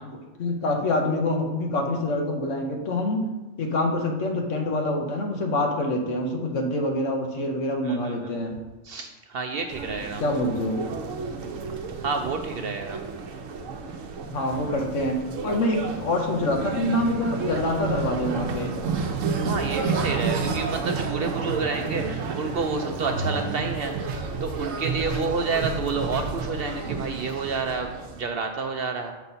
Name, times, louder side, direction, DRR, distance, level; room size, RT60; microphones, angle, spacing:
voice 1, 0.0-3.3 3.6-8.6 10.2-10.8 14.3-18.8, left 1 dB, 70° left, 3 dB, 1.3 m, -26 dB
voice 2, 7.8-8.6 8.8-10.2 12.0-13.0 19.3-24.1 24.4-29.1, right 4 dB, 60° right, 5 dB, 0.6 m, -30 dB
sound 1, 9.7-28.2, right 4 dB, 80° right, 1.1 m, -31 dB
7.1 x 4.0 x 5.5 m, 1.1 s
omnidirectional pair, 1.3 m